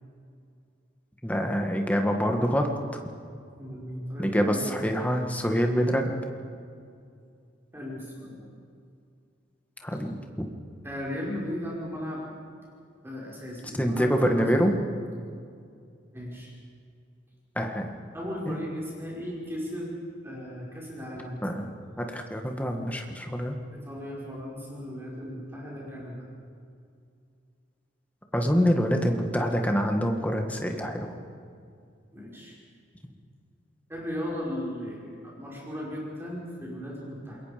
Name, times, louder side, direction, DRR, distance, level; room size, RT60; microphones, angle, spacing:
voice 1, 1.2-3.0 4.2-6.1 9.8-10.2 13.7-14.7 17.5-17.9 18.5-18.6 21.4-21.7 22.0-23.5 28.3-31.1, equal, 10° left, 3 dB, 1.8 m, -26 dB
voice 2, 3.6-4.9 7.7-8.5 10.8-12.2 13.0-14.9 16.1-16.5 18.1-19.9 20.2-21.5 23.7-26.3 32.1-32.6 33.9-37.4, equal, 10° right, -4 dB, 5.3 m, -36 dB
28.5 x 21.5 x 5.2 m, 2.4 s
head